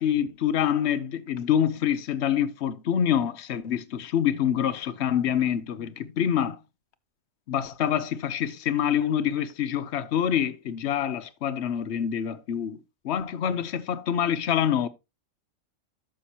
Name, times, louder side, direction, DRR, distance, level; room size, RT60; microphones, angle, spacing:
voice 1, 0.0-6.6 7.5-12.8 13.0-14.9, left 9 dB, 60° left, 1.0 m, -26 dB
11.5 x 7.0 x 2.9 m
omnidirectional pair, 1.3 m